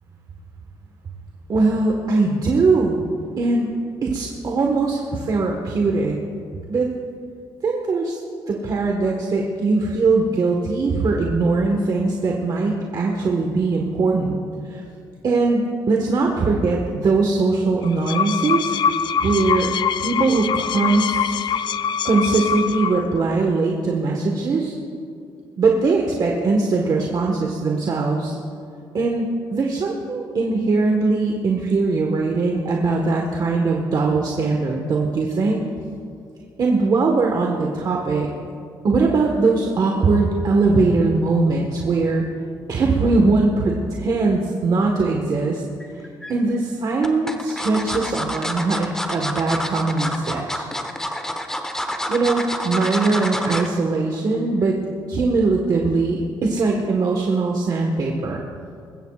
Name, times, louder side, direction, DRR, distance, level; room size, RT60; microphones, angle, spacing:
voice 1, 1.5-3.0 3.4-3.7 4.0-6.2 6.7-6.9 7.6-8.2 8.5-14.4 14.7-14.8 15.2-18.7 19.2-19.7 20.0-21.5 22.0-24.7 25.6-28.3 28.9-35.6 36.6-38.3 38.8-42.2 42.7-45.6 46.3-50.7 52.1-54.7 55.1-58.4, right 3 dB, 50° right, 0 dB, 1.4 m, -21 dB
sound 1, 17.8-23.2, left 7 dB, 65° left, 0.4 m, -24 dB
sound 2, 45.8-46.3 47.0-53.7 54.1-54.4 54.7-54.8, left 1 dB, 5° left, 1.1 m, -28 dB
21.0 x 15.0 x 2.4 m, 2.4 s
cardioid pair, 80°, 8 cm